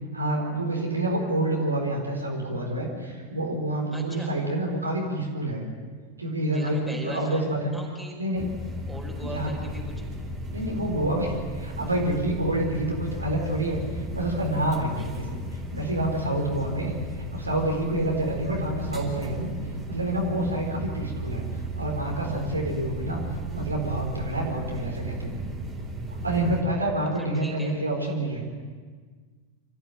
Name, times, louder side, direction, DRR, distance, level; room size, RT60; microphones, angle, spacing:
voice 1, 0.1-5.6 6.2-7.8 8.2-8.5 9.2-9.5 10.5-15.4 15.7-16.9 17.3-19.5 19.9-21.4 21.8-23.2 23.5-25.4 26.2-28.4, right 1 dB, 80° right, -1 dB, 4.4 m, -28 dB
voice 2, 3.9-4.3 6.5-7.4 7.7-8.1 8.9-10.1 15.0-15.1 27.3-27.7, right 1 dB, ahead, -1 dB, 4.7 m, -39 dB
sound 1, 8.3-26.6, right 1 dB, 20° right, 4.4 m, -35 dB
26.0 x 14.5 x 8.0 m, 1.5 s
figure-of-eight pair, 90°, 0 cm